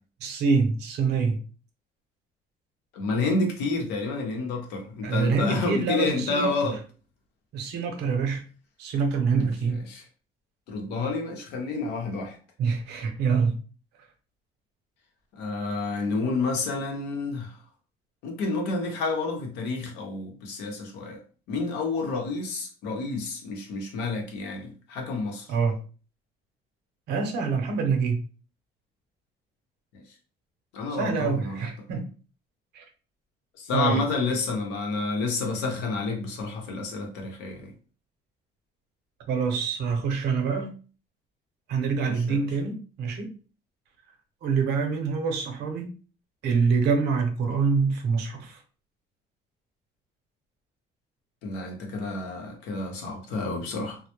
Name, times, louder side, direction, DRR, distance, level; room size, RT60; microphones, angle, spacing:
voice 1, 0.2-1.4 5.0-6.7 7.5-8.4 8.8-9.8 12.6-13.6 25.5-25.8 27.1-28.2 30.9-32.1 32.7-32.8 33.7-34.0 39.3-40.7 41.7-43.3 44.4-45.9 46.4-48.6, right 5 dB, 75° right, 0.7 m, -25 dB
voice 2, 2.9-6.8 9.3-9.5 9.9-10.0 10.7-12.4 15.3-17.5 18.2-21.2 21.5-25.4 30.7-31.6 33.6-37.7 42.3-42.4 51.4-54.0, left 3 dB, 90° left, 0.7 m, -29 dB
2.2 x 2.0 x 2.8 m
cardioid pair, 110°, 17 cm